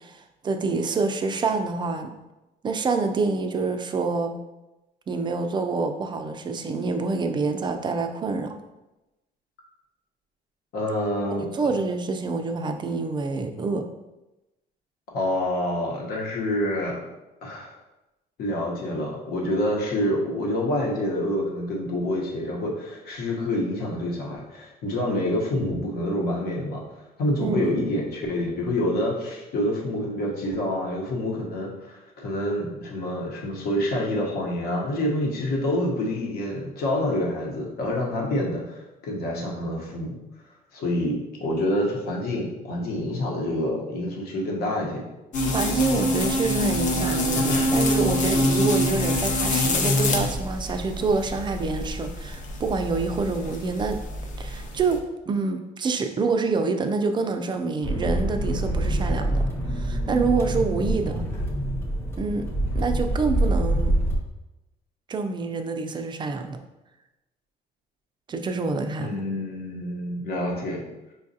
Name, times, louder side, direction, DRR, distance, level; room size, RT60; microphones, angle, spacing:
voice 1, 0.0-2.1 2.6-4.4 5.1-8.6 11.5-13.9 27.4-27.8 45.5-54.0 54.4-55.0 55.3-59.4 59.7-61.2 62.2-62.5 62.7-63.9 65.1-66.6 68.3-69.1, right 4 dB, 25° right, 6 dB, 0.4 m, -26 dB
voice 2, 10.7-11.5 15.1-17.0 17.4-17.7 18.4-26.8 27.2-40.1 40.7-45.0 47.0-47.7 48.2-48.3 69.0-70.8, left 1 dB, 65° left, -2 dB, 1.0 m, -27 dB
sound 1, 45.3-55.0, left 1 dB, 50° left, 0.6 m, -25 dB
sound 2, 57.8-64.2, right 1 dB, 15° left, 0.8 m, -25 dB
5.1 x 2.4 x 2.7 m, 0.99 s
cardioid pair, 110°, 17 cm